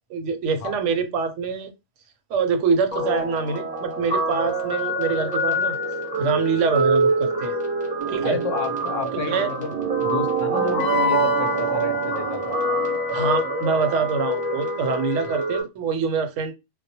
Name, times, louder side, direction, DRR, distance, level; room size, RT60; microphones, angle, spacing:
voice 1, 0.1-1.7 2.3-5.7 6.2-7.5 8.1-8.4 9.1-9.5 13.1-16.5, right 5 dB, 80° right, 0.9 m, -25 dB
Guitar, 2.9-15.6, right 1 dB, 10° right, 0.6 m, -25 dB
sound 1, 8.0-13.0, right 10 dB, 55° right, 0.6 m, -31 dB
voice 2, 8.2-9.7 10.0-12.6, left 6 dB, 90° left, 0.9 m, -31 dB
Wind instrument woodwind instrument, 10.8-15.4, left 5 dB, 65° left, 0.8 m, -31 dB
2.3 x 2.0 x 2.7 m
omnidirectional pair, 1.3 m